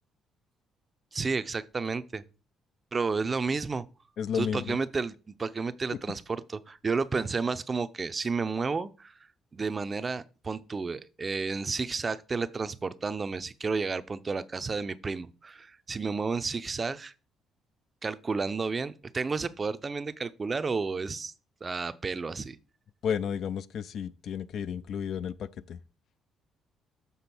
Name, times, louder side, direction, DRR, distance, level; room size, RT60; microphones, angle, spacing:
voice 1, 1.1-2.2 2.9-3.8 4.3-9.1 9.5-17.1 18.0-21.3 21.6-22.6, right 4 dB, 25° right, 0.5 m, -31 dB
voice 2, 4.2-4.8 23.0-25.8, left 8 dB, 60° left, 0.4 m, -32 dB
7.0 x 3.7 x 5.9 m
cardioid pair, 120°, 0 cm